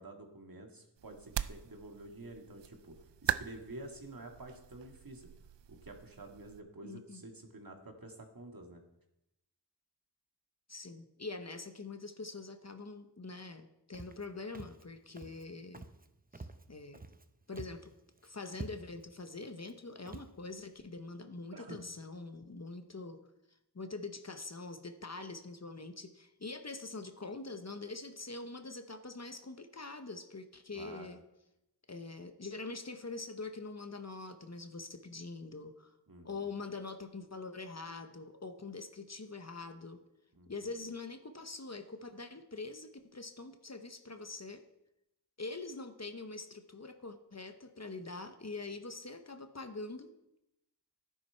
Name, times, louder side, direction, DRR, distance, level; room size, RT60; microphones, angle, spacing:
voice 1, 0.0-5.3 5.7-8.8 21.5-21.8 30.7-31.1 36.1-36.5 40.3-40.5, right 2 dB, 50° right, 3 dB, 1.9 m, -49 dB
sound 1, 1.0-6.6, right 10 dB, 75° right, 0.5 m, -41 dB
voice 2, 6.8-7.2 10.7-15.9 16.3-17.0 17.5-17.9 18.2-23.3 23.7-31.2 31.9-35.9 36.2-40.0 40.5-44.6 45.4-50.1, left 3 dB, 35° left, 8 dB, 1.0 m, -44 dB
Walk footsteps, 13.9-14.3 14.5-14.8 15.1-15.4 15.7-16.1 16.3-17.2 17.5-17.9 18.2-18.3 18.5-19.1 19.6-19.7 20.1-20.3, right 2 dB, 20° right, 0.7 m, -47 dB
12.0 x 10.5 x 4.5 m, 0.88 s
wide cardioid pair, 50°, 43 cm